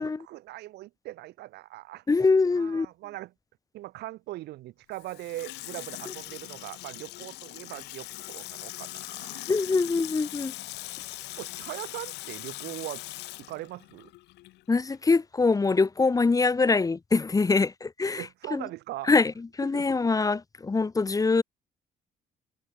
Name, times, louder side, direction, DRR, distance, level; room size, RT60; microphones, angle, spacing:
voice 1, 0.0-2.0 2.5-3.3 3.7-9.5 10.7-11.1 11.4-13.0 13.5-14.1 18.2-19.1 19.7-19.9, right 17 dB, 80° right, 3.4 m, -40 dB
voice 2, 2.1-2.9 9.5-10.5 14.7-18.2 18.5-18.6 19.1-19.3 19.6-21.4, left 4 dB, 20° left, 1.6 m, -24 dB
Water tap faucet / Sink (filling or washing), 4.9-14.6 14.9-15.0, left 18 dB, 85° left, 4.0 m, -41 dB
cardioid pair, 110°, 17 cm